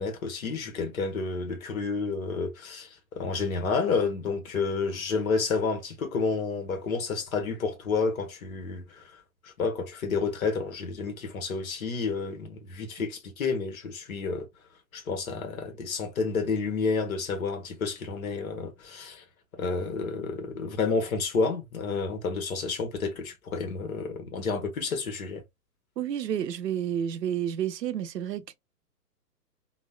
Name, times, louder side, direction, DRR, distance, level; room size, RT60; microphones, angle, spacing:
voice 1, 0.0-14.5 14.9-19.2 19.6-25.4, left 4 dB, 60° left, 1.0 m, -30 dB
voice 2, 26.0-28.5, right 9 dB, 85° right, 0.6 m, -30 dB
3.0 x 2.1 x 2.2 m
hypercardioid pair, 130°, 48 cm